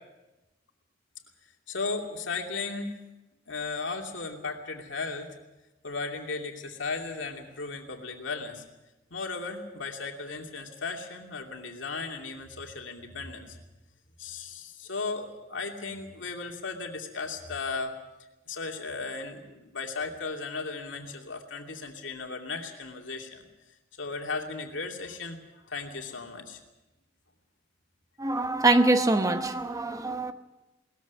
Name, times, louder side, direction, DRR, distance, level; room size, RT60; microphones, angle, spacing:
voice 1, 1.7-3.0 3.5-5.3 5.8-8.6 9.1-13.6 14.2-18.0 18.5-23.4 24.0-26.6, left 4 dB, 75° left, 3 dB, 2.7 m, -36 dB
voice 2, 28.2-30.3, right 2 dB, 20° right, 8 dB, 1.0 m, -24 dB
19.5 x 14.5 x 9.6 m, 1.0 s
head